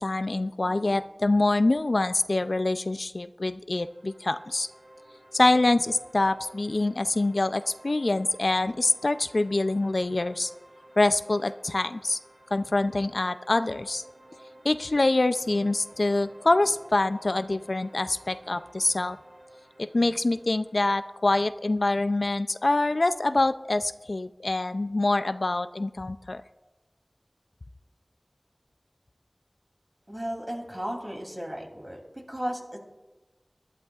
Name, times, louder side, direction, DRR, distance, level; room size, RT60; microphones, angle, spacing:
voice 1, 0.0-4.7 5.3-10.5 11.0-12.2 12.5-14.0 14.6-19.2 19.8-26.4, left 2 dB, 85° left, 11 dB, 0.4 m, -25 dB
sound 1, 3.8-20.8, right 1 dB, 90° right, 4.8 m, -53 dB
voice 2, 30.1-32.0 32.3-32.8, equal, 25° right, 1 dB, 2.9 m, -34 dB
21.5 x 11.5 x 2.4 m, 1.1 s
wide cardioid pair, 45°, 0 cm